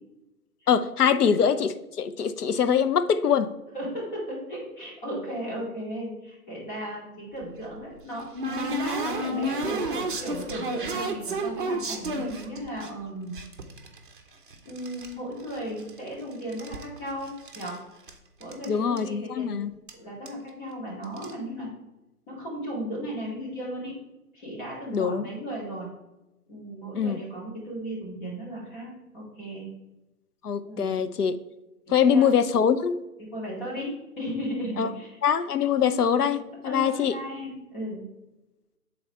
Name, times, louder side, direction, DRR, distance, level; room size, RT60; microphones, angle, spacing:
voice 1, 0.7-3.5 18.7-19.7 24.9-25.3 26.9-27.2 30.4-31.4 31.9-33.0 34.8-34.9 35.2-37.2, left 7 dB, 75° left, 10 dB, 0.7 m, -23 dB
voice 2, 3.7-8.3 8.6-9.8 10.2-13.4 14.6-17.8 18.4-19.7 19.9-21.7 22.3-24.0 24.3-25.9 26.5-29.7 30.6-30.9 31.9-32.3 33.2-35.2 36.6-38.0, equal, 30° left, -3 dB, 2.5 m, -35 dB
sound 1, 7.4-12.9 13.3-15.1 15.4-16.2 16.4-17.8 18.1-18.2 18.4-18.7 19.0-19.1 19.9-20.0 20.3-20.5 21.0-21.3, right 1 dB, 35° right, 0.7 m, -32 dB
7.5 x 3.9 x 4.4 m, 1.0 s
hypercardioid pair, 155°, 46 cm